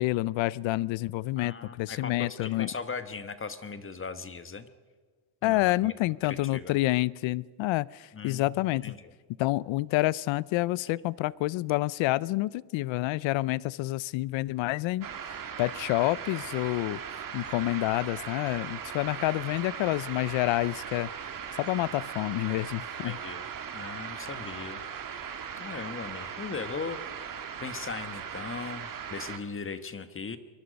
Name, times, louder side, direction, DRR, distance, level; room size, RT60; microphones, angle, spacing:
voice 1, 0.0-2.7 5.4-8.9 9.4-17.0 17.3-21.1 21.6-23.2, left 18 dB, 80° left, 22 dB, 0.6 m, -28 dB
voice 2, 1.4-4.7 5.4-5.9 6.2-6.8 8.1-8.4 8.8-8.9 23.0-23.4 23.7-24.8 25.6-27.0 27.6-30.4, left 5 dB, 25° left, 11 dB, 1.3 m, -38 dB
sound 1, 15.0-29.4, right 7 dB, 45° right, 1.9 m, -39 dB
24.0 x 21.5 x 5.3 m, 1.5 s
cardioid pair, 110°, 46 cm